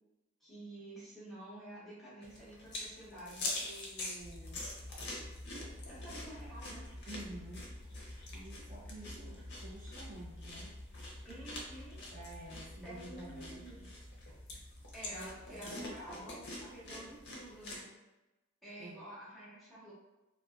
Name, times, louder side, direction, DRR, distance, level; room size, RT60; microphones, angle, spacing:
voice 1, 0.4-4.6 5.9-6.8 11.2-12.0 12.8-13.8 14.9-17.9 18.6-19.9, right 1 dB, ahead, -10 dB, 0.8 m, -50 dB
sound 1, 2.2-17.8, left 2 dB, 55° left, 0.5 m, -46 dB
sound 2, 4.2-17.3, left 1 dB, 35° left, 1.0 m, -50 dB
voice 2, 7.1-7.7 8.3-10.8 12.1-13.9 15.1-16.3 18.8-19.0, right 1 dB, 40° right, -6 dB, 0.6 m, -50 dB
2.6 x 2.1 x 2.2 m, 1.0 s
head